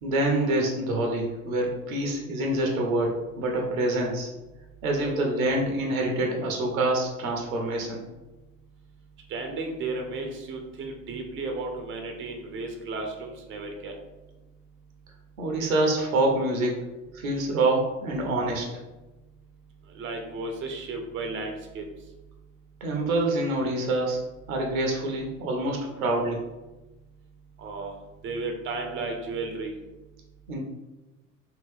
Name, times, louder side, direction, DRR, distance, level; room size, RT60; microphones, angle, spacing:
voice 1, 0.0-4.3 4.8-8.0 15.4-16.8 17.1-18.7 22.8-24.2 24.5-26.4 30.5-30.6, right 2 dB, 70° right, 1 dB, 0.8 m, -26 dB
voice 2, 9.3-13.9 19.9-21.8 27.6-27.9 28.2-29.7, right 3 dB, 30° right, 3 dB, 0.6 m, -34 dB
2.9 x 2.8 x 3.5 m, 1.1 s
figure-of-eight pair, 60°, 43 cm